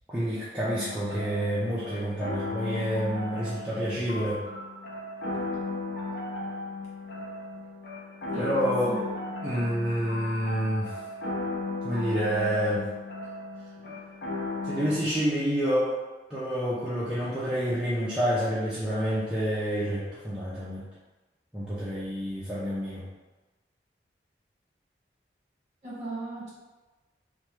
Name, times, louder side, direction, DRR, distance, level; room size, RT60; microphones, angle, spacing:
voice 1, 0.1-4.4 8.4-9.0 9.4-10.9 11.8-12.9 14.6-16.0 16.3-20.8 21.5-23.0, equal, 5° right, -11 dB, 0.5 m, -28 dB
sound 1, 0.6-15.0, left 2 dB, 65° left, 0.5 m, -36 dB
voice 2, 25.8-26.5, right 2 dB, 40° right, -8 dB, 1.2 m, -36 dB
3.1 x 2.3 x 3.0 m, 1.2 s
head